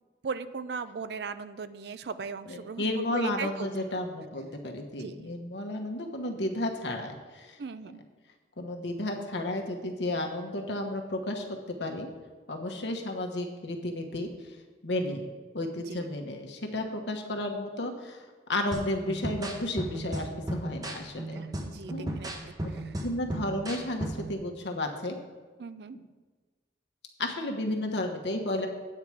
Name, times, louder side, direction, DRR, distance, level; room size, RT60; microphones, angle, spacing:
voice 1, 0.2-3.7 5.0-5.3 7.6-8.0 15.9-16.0 21.3-22.3 25.6-26.0, right 5 dB, 70° right, 13 dB, 0.4 m, -38 dB
voice 2, 2.5-7.6 7.8-8.0 8.6-11.4 11.8-12.1 12.5-14.3 14.8-15.3 15.5-18.2 18.5-21.4 21.9-22.1 22.6-22.7 23.0-25.2 27.2-28.7, left 1 dB, 85° left, 3 dB, 1.2 m, -32 dB
sound 1, 18.7-24.4, right 1 dB, 20° right, 0.9 m, -36 dB
8.8 x 4.8 x 7.1 m, 1.4 s
head